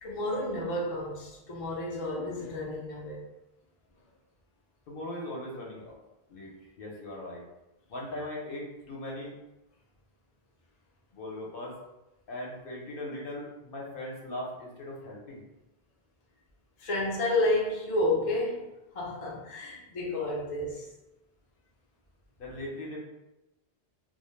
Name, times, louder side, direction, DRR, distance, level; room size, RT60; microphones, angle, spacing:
voice 1, 0.0-3.2 16.8-18.6 18.9-20.9, left 1 dB, 45° left, -4 dB, 0.5 m, -30 dB
voice 2, 4.9-5.9 6.3-6.5 6.8-7.4 7.9-9.3 11.1-11.7 12.3-15.4 22.4-23.0, left 1 dB, 60° left, -3 dB, 0.8 m, -39 dB
2.2 x 2.1 x 3.1 m, 0.95 s
omnidirectional pair, 1.1 m